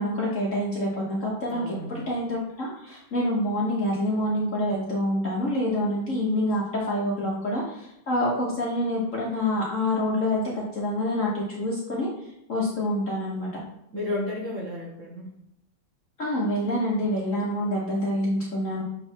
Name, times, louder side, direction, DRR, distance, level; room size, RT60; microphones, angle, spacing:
voice 1, 0.0-12.1 12.5-13.6 16.2-18.8, left 1 dB, 45° left, -5 dB, 1.1 m, -27 dB
voice 2, 1.5-2.0 7.2-7.3 13.9-15.3, left 1 dB, 40° right, -4 dB, 1.5 m, -32 dB
6.9 x 3.3 x 4.3 m, 0.81 s
omnidirectional pair, 2.3 m